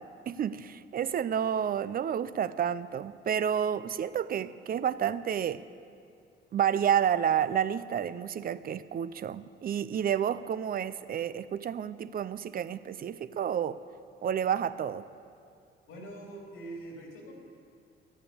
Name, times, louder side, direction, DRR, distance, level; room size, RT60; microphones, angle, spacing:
voice 1, 0.0-5.6 6.5-13.8 14.2-15.0, right 9 dB, 45° right, 15 dB, 0.5 m, -30 dB
voice 2, 15.9-17.3, right 2 dB, 90° left, -1 dB, 3.4 m, -43 dB
11.0 x 9.9 x 8.5 m, 2.4 s
cardioid pair, 90°, 20 cm